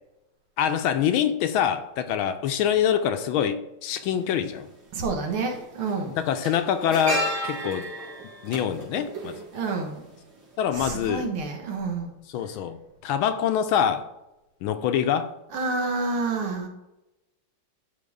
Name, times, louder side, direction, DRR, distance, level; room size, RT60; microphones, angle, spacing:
voice 1, 0.6-4.7 6.2-7.8 8.4-9.3 10.6-11.3 12.3-14.1 14.6-15.3, left 9 dB, 75° left, 9 dB, 1.3 m, -25 dB
sound 1, 3.9-4.0 5.3-5.5 5.8-10.1 10.4-10.5, right 1 dB, 60° right, 3.2 m, -32 dB
voice 2, 4.9-6.2 9.5-10.1 10.7-12.1 15.5-16.7, right 3 dB, 75° right, 2 dB, 2.2 m, -28 dB
11.5 x 4.6 x 3.6 m, 0.94 s
omnidirectional pair, 2.4 m